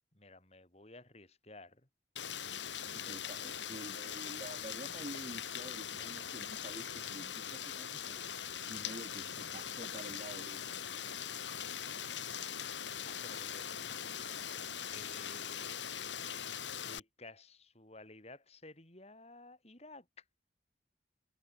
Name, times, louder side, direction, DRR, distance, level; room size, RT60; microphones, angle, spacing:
voice 1, 0.1-1.9 2.8-3.9 13.0-15.7 16.6-20.2, left 2 dB, 35° left, 5.2 m, -55 dB
Rain, 2.2-17.0, left 8 dB, 80° left, 3.0 m, -41 dB
voice 2, 3.1-8.3 8.7-10.8, right 1 dB, 40° right, 2.2 m, -49 dB
head